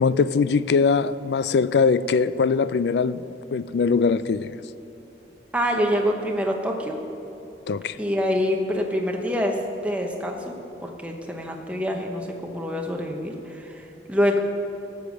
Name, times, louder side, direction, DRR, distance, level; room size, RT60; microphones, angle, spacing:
voice 1, 0.0-3.2 3.5-4.6 7.7-8.0, left 5 dB, 70° left, 0.3 m, -21 dB
voice 2, 5.5-7.0 8.0-10.5 10.8-14.4, equal, 5° right, 0.9 m, -26 dB
14.5 x 7.1 x 6.3 m
head